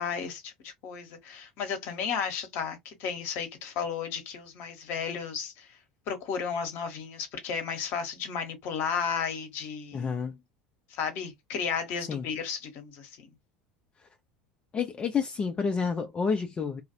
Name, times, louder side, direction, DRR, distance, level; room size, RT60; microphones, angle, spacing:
voice 1, 0.0-5.8 6.1-10.1 10.9-13.3, left 6 dB, 50° left, 0.9 m, -33 dB
voice 2, 9.9-10.3 12.1-12.2 14.7-16.8, left 5 dB, 25° left, 0.4 m, -29 dB
2.3 x 2.0 x 2.7 m
figure-of-eight pair, 75°, 5 cm